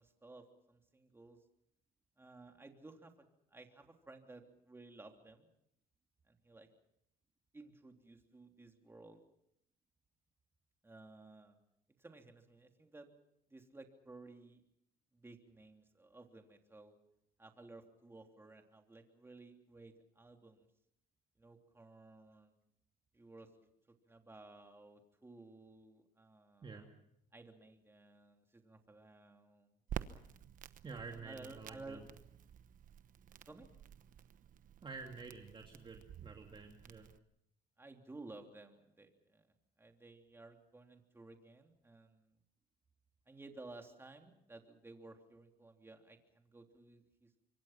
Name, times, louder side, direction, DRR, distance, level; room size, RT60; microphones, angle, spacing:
voice 1, 0.0-1.4 2.2-5.5 6.3-6.7 7.5-9.2 10.8-11.6 12.0-13.1 13.5-14.6 15.1-17.0 17.4-20.7 21.4-22.6 23.1-23.7 24.0-26.9 27.3-29.8 30.9-32.0 33.5-33.7 37.8-39.5 39.8-42.3 43.3-47.3, right 2 dB, 15° right, 4 dB, 3.2 m, -56 dB
Crackle, 29.9-37.2, right 9 dB, 50° right, 1.1 m, -50 dB
voice 2, 30.8-32.1 34.8-37.1, right 4 dB, 30° right, 2 dB, 2.6 m, -49 dB
26.0 x 24.0 x 5.9 m, 0.75 s
cardioid pair, 110°, 17 cm